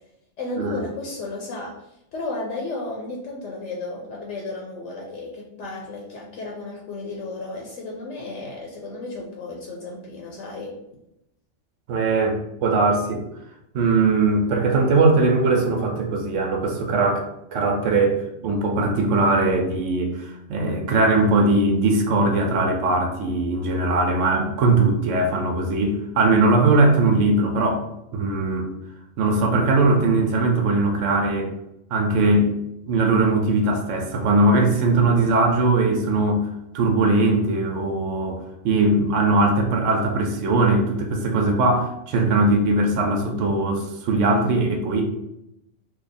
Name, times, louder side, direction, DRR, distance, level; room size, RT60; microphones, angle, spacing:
voice 1, 0.4-10.7, left 2 dB, 80° left, -1 dB, 1.0 m, -33 dB
voice 2, 11.9-13.2 13.7-27.8 28.1-28.7 29.2-31.5 31.9-32.5 32.9-36.5 36.7-45.0, right 2 dB, 90° right, 2 dB, 1.0 m, -20 dB
2.7 x 2.4 x 4.0 m, 0.84 s
omnidirectional pair, 1.3 m